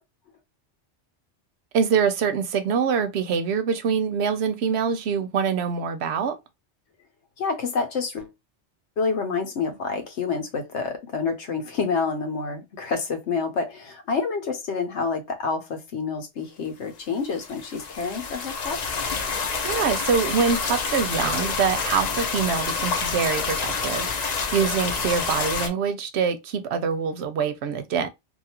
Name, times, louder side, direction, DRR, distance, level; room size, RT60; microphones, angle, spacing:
voice 1, 1.7-6.4 19.6-28.1, right 6 dB, 75° right, 0.8 m, -25 dB
voice 2, 7.4-8.3 9.0-19.0, left 4 dB, 75° left, 1.1 m, -28 dB
sound 1, 17.3-25.7, left 5 dB, 50° left, 0.5 m, -28 dB
2.7 x 2.4 x 2.8 m
omnidirectional pair, 1.2 m